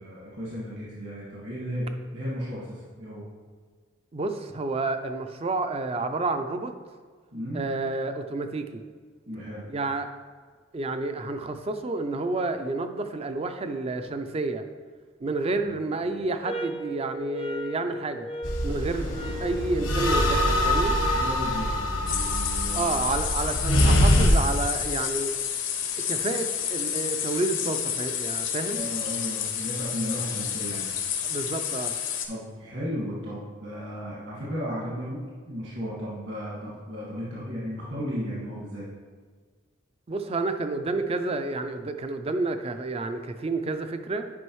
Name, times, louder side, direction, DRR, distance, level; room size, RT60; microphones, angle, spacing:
voice 1, 0.0-3.3 7.3-7.6 9.3-9.7 15.6-15.8 21.1-23.1 28.7-30.9 32.3-38.9, equal, 60° right, -8 dB, 2.0 m, -35 dB
voice 2, 4.1-6.7 7.5-8.8 9.7-10.1 10.7-14.6 15.2-18.3 18.6-21.0 22.7-25.3 26.1-28.9 31.2-31.9 40.1-44.3, right 3 dB, 30° right, 8 dB, 0.4 m, -30 dB
sound 1, 16.4-21.4, right 2 dB, 30° left, 0.4 m, -36 dB
sound 2, 18.4-24.3, left 1 dB, 85° left, 1.2 m, -24 dB
sound 3, 22.1-32.3, left 9 dB, 70° left, 0.8 m, -30 dB
9.4 x 5.3 x 3.1 m, 1.5 s
head